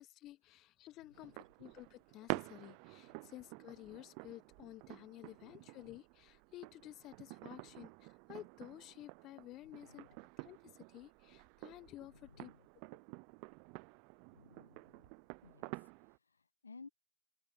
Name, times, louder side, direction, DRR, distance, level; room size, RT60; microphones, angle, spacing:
voice 1, 0.0-10.1 10.4-12.5, left 15 dB, 30° left, 1.0 m, -53 dB
voice 2, 1.0-1.4 3.1-3.3 5.2-5.6 7.4-7.8 9.6-10.3 12.0-12.7 14.3-15.1 15.4-16.9, left 4 dB, 90° left, 1.2 m, -60 dB
sound 1, 1.1-16.2, right 34 dB, 40° right, 0.4 m, -49 dB
open air
hypercardioid pair, 115°, 0 cm